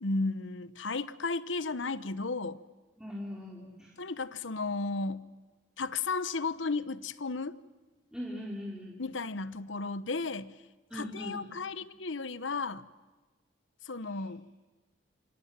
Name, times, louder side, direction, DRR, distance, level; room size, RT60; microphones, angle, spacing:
voice 1, 0.0-2.6 4.0-5.3 5.8-7.6 9.0-10.5 10.9-12.8 13.8-14.5, left 3 dB, 80° left, 1.0 m, -34 dB
voice 2, 3.0-3.9 8.1-9.0 10.9-11.4, left 1 dB, 5° right, 3.4 m, -40 dB
27.0 x 26.5 x 7.5 m
head